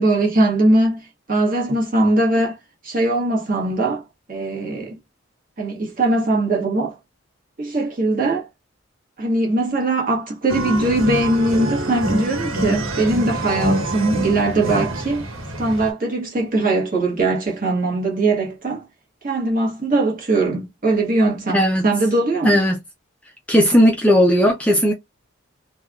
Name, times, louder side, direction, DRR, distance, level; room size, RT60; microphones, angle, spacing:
voice 1, 0.0-2.6 2.8-4.0 4.3-5.0 5.6-7.0 7.6-8.5 9.2-15.3 15.6-18.8 19.2-22.6, right 2 dB, 40° right, 1.3 m, -20 dB
sound 1, 10.5-15.9, right 1 dB, 85° right, 1.2 m, -25 dB
voice 2, 21.5-21.9 22.4-22.8 23.5-24.9, equal, 5° left, 0.5 m, -16 dB
3.3 x 2.3 x 2.3 m
head